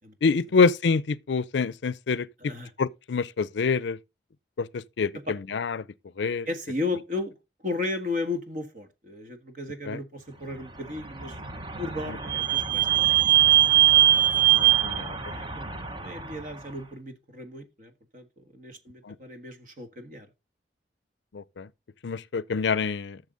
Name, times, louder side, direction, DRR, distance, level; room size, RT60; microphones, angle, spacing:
voice 1, 0.2-4.0 4.6-5.8 6.2-6.5 9.9-10.0 12.1-12.2 14.5-15.2 19.0-19.2 21.3-21.7 22.0-23.2, left 4 dB, 80° left, 0.5 m, -26 dB
voice 2, 6.5-7.3 7.6-11.4 11.8-13.2 15.3-20.3, left 2 dB, 45° right, 1.6 m, -35 dB
Vehicle / Squeak, 10.9-16.5, right 12 dB, 25° right, 0.9 m, -22 dB
12.0 x 6.9 x 3.8 m
head